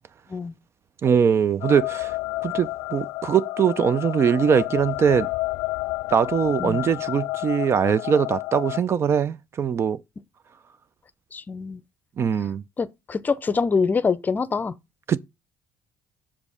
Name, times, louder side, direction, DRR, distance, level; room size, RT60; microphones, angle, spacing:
voice 1, 1.0-2.1 2.4-5.3 6.1-10.0 12.2-12.6 15.1-15.2, right 7 dB, 40° right, 0.5 m, -21 dB
sound 1, 1.6-8.8, left 20 dB, 85° left, 0.4 m, -30 dB
voice 2, 11.3-11.8 12.8-14.7, left 5 dB, 25° left, 0.6 m, -25 dB
7.2 x 5.1 x 5.4 m
cardioid pair, 110°, 7 cm